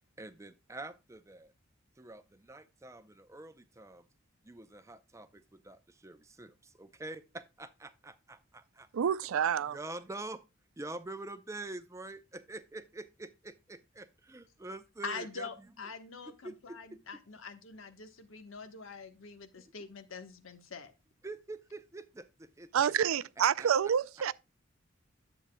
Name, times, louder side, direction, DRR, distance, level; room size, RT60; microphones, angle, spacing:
voice 1, 0.2-1.5 2.0-4.0 4.4-8.9 9.7-10.4 10.8-15.5 15.8-15.9 16.2-17.0 19.6-19.7 21.2-22.7 23.6-23.7, right 2 dB, 15° right, 0.5 m, -46 dB
voice 2, 8.9-9.8 22.7-24.3, right 8 dB, 90° right, 0.4 m, -28 dB
voice 3, 15.0-20.9, left 4 dB, 75° left, 1.2 m, -44 dB
10.0 x 8.1 x 2.2 m
head